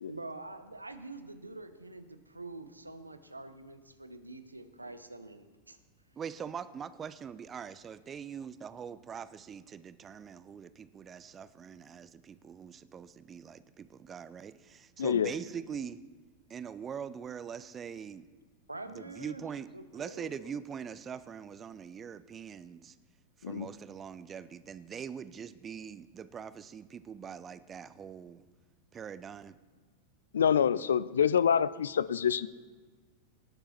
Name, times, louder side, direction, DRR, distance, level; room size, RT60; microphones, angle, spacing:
voice 1, 0.1-5.8 18.7-19.4 19.7-20.5, right 2 dB, 85° right, 10 dB, 0.8 m, -46 dB
voice 2, 6.2-16.0 16.5-18.3 18.9-19.7 19.9-22.9 23.5-28.4 28.9-29.5, right 7 dB, 25° right, 15 dB, 0.5 m, -43 dB
voice 3, 15.0-15.3 23.4-23.7 30.3-32.5, left 8 dB, 65° left, 17 dB, 0.4 m, -26 dB
18.0 x 6.9 x 4.3 m, 1.4 s
figure-of-eight pair, 90°, 0 cm